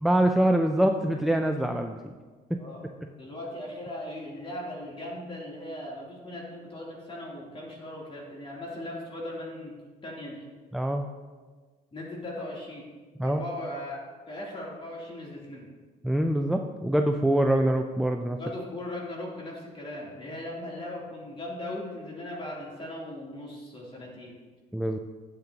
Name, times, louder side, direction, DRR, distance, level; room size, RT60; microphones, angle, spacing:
voice 1, 0.0-2.0 2.5-2.6 10.7-11.1 13.2-13.4 16.0-18.4 24.7-25.0, right 1 dB, ahead, 4 dB, 0.4 m, -24 dB
voice 2, 3.2-9.7 10.0-10.5 11.9-12.9 13.2-14.0 14.3-15.7 18.4-24.3, left 1 dB, 30° left, -4 dB, 3.2 m, -38 dB
12.0 x 8.4 x 2.9 m, 1.4 s
cardioid pair, 110°, 17 cm